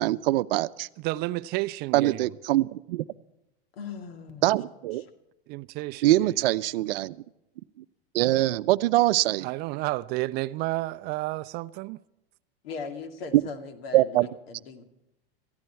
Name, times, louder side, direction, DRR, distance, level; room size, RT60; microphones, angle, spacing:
voice 1, 0.0-0.9 1.9-3.0 4.4-5.0 6.0-7.2 8.1-9.5 13.9-14.3, right 16 dB, 65° right, 0.7 m, -23 dB
voice 2, 1.0-2.3 5.5-6.3 9.4-12.0, right 19 dB, 35° right, 0.4 m, -31 dB
voice 3, 3.7-4.5 4.9-5.1 12.6-14.8, left 5 dB, 70° left, 2.5 m, -39 dB
18.0 x 15.0 x 4.6 m
supercardioid pair, 130°, 30 cm